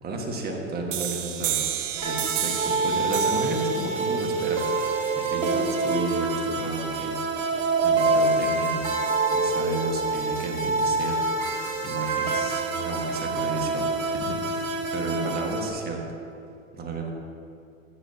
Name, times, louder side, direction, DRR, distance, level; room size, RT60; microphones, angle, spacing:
voice 1, 0.0-1.7 2.0-7.2 7.5-16.0 16.7-17.1, right 3 dB, 25° right, 1 dB, 1.6 m, -33 dB
sound 1, 0.9-6.3, right 10 dB, 70° right, 0.9 m, -32 dB
sound 2, 2.0-15.7, right 3 dB, 90° right, 1.4 m, -26 dB
14.5 x 7.8 x 2.8 m, 2.6 s
hypercardioid pair, 110°, 39 cm